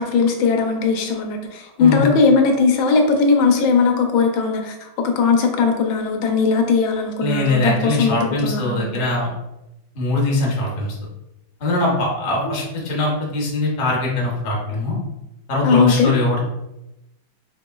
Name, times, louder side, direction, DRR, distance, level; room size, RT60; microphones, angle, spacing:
voice 1, 0.0-9.1 15.6-16.1, left 5 dB, 85° left, 4 dB, 1.4 m, -18 dB
voice 2, 7.2-9.3 9.9-10.9 11.6-15.0 15.5-16.4, left 2 dB, 45° left, -3 dB, 0.6 m, -21 dB
4.8 x 2.8 x 2.3 m, 0.92 s
omnidirectional pair, 2.1 m